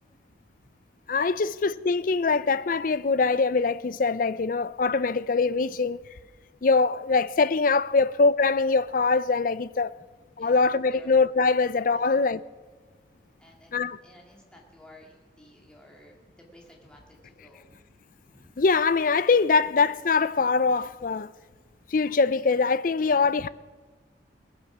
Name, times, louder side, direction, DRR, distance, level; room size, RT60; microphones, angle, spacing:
voice 1, 1.1-6.0 6.6-10.0 10.4-12.4 13.7-14.0 18.6-21.3 21.9-23.5, left 4 dB, 50° left, 0.5 m, -23 dB
voice 2, 13.4-17.8 18.2-18.5, left 1 dB, 5° left, 2.0 m, -54 dB
19.5 x 8.2 x 6.0 m
head